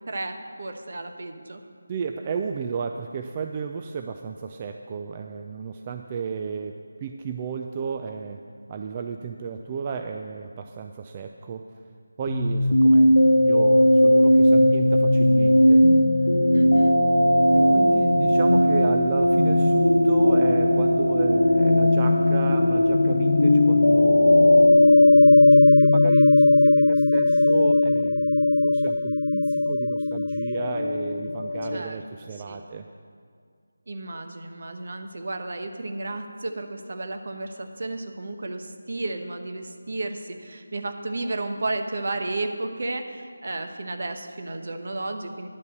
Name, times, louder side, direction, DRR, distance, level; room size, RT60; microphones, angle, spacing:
voice 1, 0.1-1.6 16.5-17.0 31.7-32.0 32.5-32.6 33.9-45.5, right 2 dB, 55° right, 6 dB, 1.1 m, -33 dB
voice 2, 1.9-8.4 8.7-11.7 12.2-15.9 17.5-24.7 25.5-32.8, right 6 dB, 25° right, 5 dB, 0.4 m, -33 dB
sound 1, 12.3-31.8, left 1 dB, 90° left, 1.0 m, -18 dB
10.5 x 5.4 x 8.2 m, 2.2 s
figure-of-eight pair, 165°, 0 cm